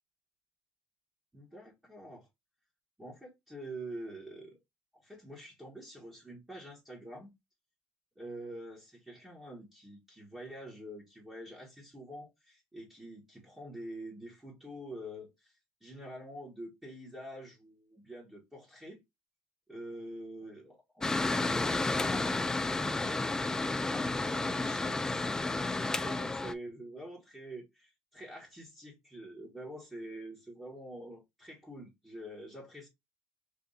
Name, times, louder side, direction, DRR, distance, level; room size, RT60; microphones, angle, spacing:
voice 1, 1.3-2.3 3.0-4.6 4.9-7.3 8.2-19.0 19.7-23.4 23.9-25.3 25.6-32.9, right 1 dB, 10° right, 1.4 m, -46 dB
Mechanical fan, 21.0-26.5, left 2 dB, 10° left, 0.4 m, -31 dB
3.4 x 2.6 x 4.0 m
cardioid pair, 110°, 5 cm